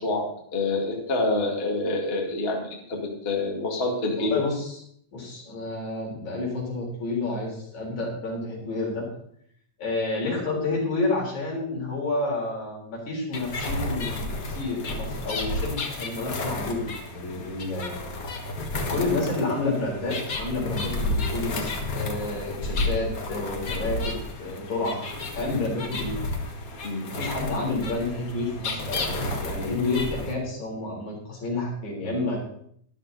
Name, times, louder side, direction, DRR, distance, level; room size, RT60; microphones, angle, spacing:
voice 1, 0.0-4.4 26.8-27.0, left 2 dB, 25° left, 0 dB, 1.8 m, -27 dB
voice 2, 4.2-4.8 5.1-9.1 9.8-18.0 18.9-25.1 25.4-26.3 27.1-32.4, left 2 dB, 70° left, -3 dB, 5.3 m, -30 dB
sound 1, 13.3-30.3, left 2 dB, 45° left, 1.2 m, -32 dB
12.5 x 12.0 x 4.0 m, 0.67 s
omnidirectional pair, 3.4 m